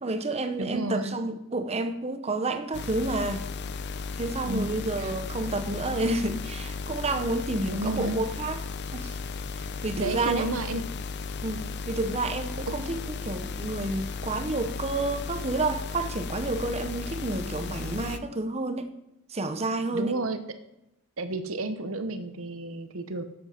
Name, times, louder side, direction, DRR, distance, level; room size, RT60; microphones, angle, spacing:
voice 1, 0.0-3.5 4.2-8.6 8.9-9.2 9.6-10.5 11.4-18.9 19.3-20.2, right 2 dB, 30° right, 0.8 m, -30 dB
voice 2, 0.6-1.2 4.4-5.1 7.6-8.2 10.0-10.8 12.9-13.0 19.9-20.4 21.2-23.2, right 2 dB, 60° right, 0.9 m, -32 dB
sound 1, 2.7-18.2, left 4 dB, 50° left, 0.6 m, -35 dB
11.0 x 7.7 x 5.8 m
head